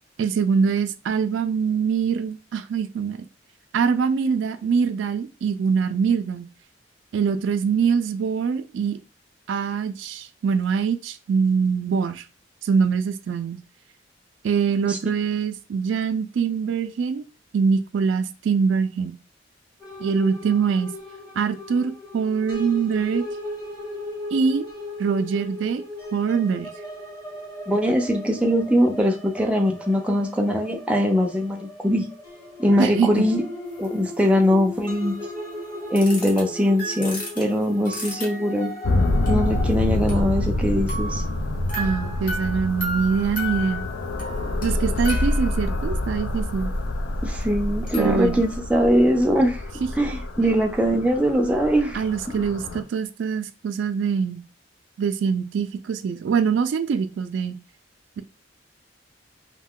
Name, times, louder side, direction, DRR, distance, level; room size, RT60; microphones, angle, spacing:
voice 1, 0.2-3.2 3.7-6.5 7.1-9.0 9.5-12.2 12.6-13.6 14.4-17.2 17.5-19.2 20.0-20.9 21.4-23.2 24.3-24.6 25.0-25.8 26.1-26.7 32.8-33.1 41.8-43.9 44.6-46.7 48.0-48.4 51.9-54.4 55.0-57.6, right 6 dB, 75° right, 0.3 m, -23 dB
sound 1, 19.8-39.7, left 1 dB, 20° left, 0.9 m, -37 dB
voice 2, 27.7-32.1 32.6-33.4 33.8-35.2 35.9-38.7 39.3-41.2 47.2-49.6 49.9-52.0, equal, 5° right, 0.4 m, -21 dB
sound 2, 33.8-33.9 34.2-34.3 36.0-36.4 36.8-38.7 39.2-40.6 40.9-46.0 47.4-47.5 47.9-48.6, left 1 dB, 45° left, 1.0 m, -34 dB
sound 3, 38.8-52.8, left 2 dB, 90° left, 0.5 m, -27 dB
2.5 x 2.1 x 3.6 m
head